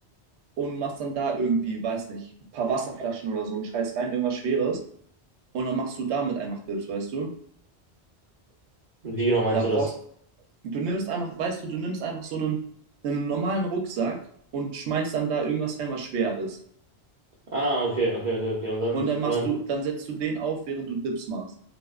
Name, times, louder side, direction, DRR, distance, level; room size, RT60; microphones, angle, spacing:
voice 1, 0.6-2.3 2.5-4.8 5.5-7.3 9.5-9.9 10.6-12.6 13.0-14.2 14.5-16.6 18.9-21.5, right 5 dB, 80° right, 3 dB, 0.9 m, -28 dB
voice 2, 9.0-9.9 17.5-19.0 19.2-19.5, right 2 dB, 55° right, -6 dB, 0.6 m, -25 dB
2.6 x 2.0 x 2.3 m, 0.63 s
omnidirectional pair, 1.1 m